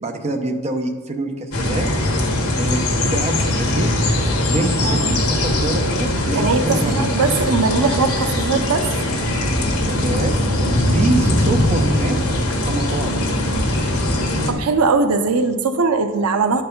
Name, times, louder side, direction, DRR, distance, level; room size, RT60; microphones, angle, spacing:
voice 1, 0.0-1.9 2.6-3.9 4.4-7.0 9.9-12.2 12.6-13.2, right 2 dB, 30° right, 4 dB, 0.7 m, -25 dB
sound 1, 1.5-14.5, left 1 dB, 75° left, 1.5 m, -20 dB
voice 2, 6.3-8.9 14.5-16.6, right 4 dB, 85° right, 9 dB, 0.6 m, -20 dB
11.0 x 4.6 x 5.2 m, 1.5 s
head